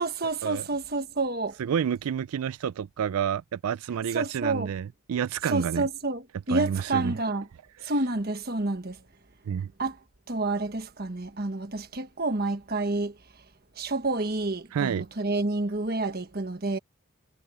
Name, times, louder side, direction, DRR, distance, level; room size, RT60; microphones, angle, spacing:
voice 1, 0.0-1.6 4.1-4.7 5.4-7.5 7.8-9.0 9.8-10.0 10.3-13.1 13.8-16.8, right 2 dB, 45° right, 1.4 m, -29 dB
voice 2, 1.6-4.8 5.1-5.9 6.5-7.1 7.8-7.9 9.5-9.7 14.7-15.1, right 8 dB, 90° right, 0.4 m, -29 dB
head